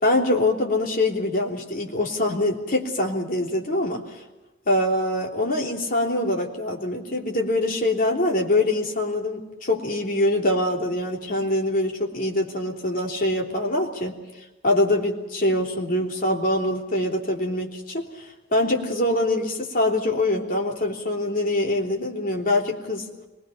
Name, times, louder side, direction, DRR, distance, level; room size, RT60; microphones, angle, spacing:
voice 1, 0.0-4.0 4.7-14.1 14.6-18.1 18.5-23.0, left 1 dB, 50° left, 0 dB, 3.3 m, -24 dB
25.0 x 21.0 x 5.8 m, 1.1 s
head